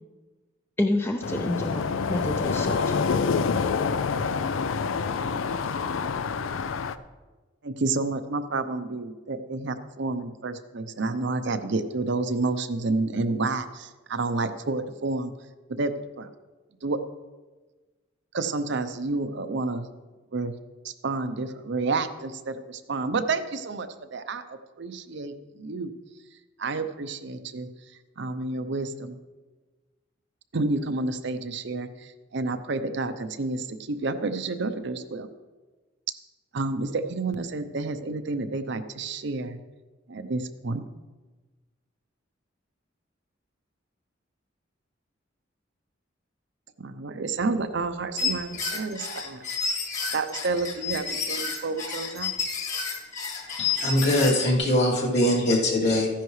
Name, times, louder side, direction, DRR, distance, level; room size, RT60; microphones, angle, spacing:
voice 1, 0.8-3.0, left 1 dB, 10° left, 4 dB, 0.5 m, -28 dB
sound 1, 1.2-7.0, left 5 dB, 90° left, 0.5 m, -27 dB
voice 2, 7.6-15.3 15.7-16.3 16.8-17.0 18.3-19.9 20.3-20.5 20.8-25.9 26.6-27.7 28.2-29.2 30.5-31.9 32.3-35.3 36.5-39.6 40.1-40.8 46.8-49.4 50.1-52.3, right 3 dB, 65° right, 9 dB, 0.7 m, -30 dB
sound 2, 48.2-54.5, left 5 dB, 40° left, 2.1 m, -30 dB
voice 3, 53.6-56.1, left 1 dB, 60° left, -5 dB, 2.9 m, -22 dB
14.0 x 10.0 x 3.2 m, 1.3 s
head